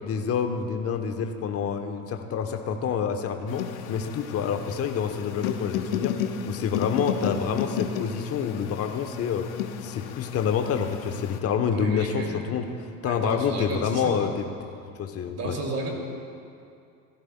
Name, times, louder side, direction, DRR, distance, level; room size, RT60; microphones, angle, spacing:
voice 1, 0.0-6.2 6.5-9.5 9.8-14.5 15.0-15.6, left 7 dB, 35° left, 6 dB, 0.9 m, -28 dB
sound 1, 3.5-11.4, left 9 dB, 75° left, 0.8 m, -33 dB
voice 2, 11.7-12.5 13.0-14.3 15.3-15.9, right 2 dB, 35° right, 0 dB, 2.6 m, -33 dB
15.5 x 14.0 x 2.2 m, 2.5 s
hypercardioid pair, 75°, 42 cm